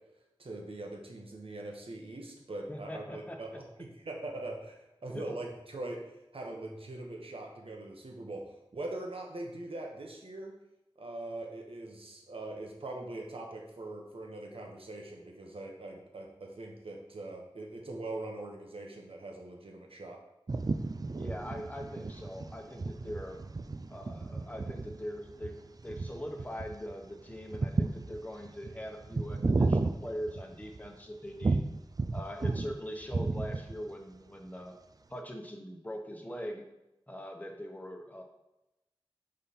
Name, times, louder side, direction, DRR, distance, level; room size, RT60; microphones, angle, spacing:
voice 1, 0.4-3.5 4.0-6.0 6.3-8.4 8.7-10.5 11.0-20.2, right 2 dB, 75° right, 1 dB, 1.2 m, -42 dB
voice 2, 2.7-3.6 5.1-5.3 21.2-23.4 23.9-31.6 32.1-34.8 35.1-36.7 37.1-38.2, equal, 15° left, 2 dB, 1.0 m, -42 dB
sound 1, 20.5-30.9 31.4-32.8 33.0-33.9, right 3 dB, 40° right, 0.4 m, -33 dB
5.4 x 5.2 x 4.2 m, 0.94 s
wide cardioid pair, 75°, 10 cm